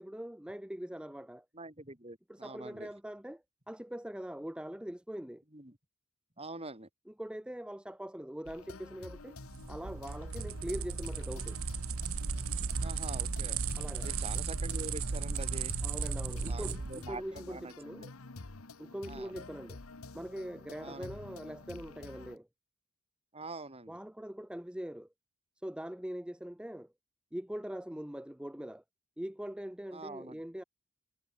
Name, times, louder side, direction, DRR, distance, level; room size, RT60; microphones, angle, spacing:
voice 1, 0.0-1.5 2.3-5.4 7.2-9.4 9.7-11.6 13.8-14.1 15.8-18.0 18.8-19.8 20.1-22.5 23.9-25.1 25.6-26.9 27.3-28.8 29.2-30.6, equal, 5° right, 0.6 m, -42 dB
voice 2, 1.5-2.9 5.5-5.8 6.4-6.9 12.8-13.6 14.0-15.7 16.5-18.1 19.1-19.4 20.8-21.1 23.3-24.0 29.9-30.4, right 2 dB, 25° right, 4.6 m, -45 dB
sound 1, 8.5-22.4, left 3 dB, 70° left, 1.3 m, -49 dB
sound 2, 9.4-17.0, right 5 dB, 65° right, 1.1 m, -35 dB
head